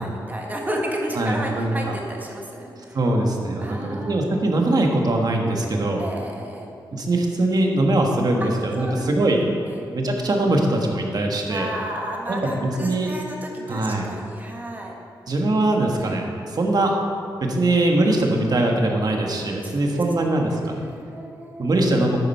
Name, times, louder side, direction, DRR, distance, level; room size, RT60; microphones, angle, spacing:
voice 1, 0.0-3.0 3.6-4.4 6.0-6.7 8.4-8.5 8.8-9.2 9.7-9.8 11.5-14.9 16.0-16.2 19.6-20.0 20.8-21.7, right 1 dB, 20° right, -1 dB, 1.7 m, -32 dB
voice 2, 1.2-1.7 2.9-6.0 6.9-9.4 9.9-11.7 12.3-13.1 13.7-14.1 15.3-17.0 17.4-20.9 21.6-22.2, right 2 dB, 50° right, 1 dB, 1.5 m, -22 dB
10.0 x 9.1 x 4.4 m, 2.4 s
cardioid pair, 80°, 8 cm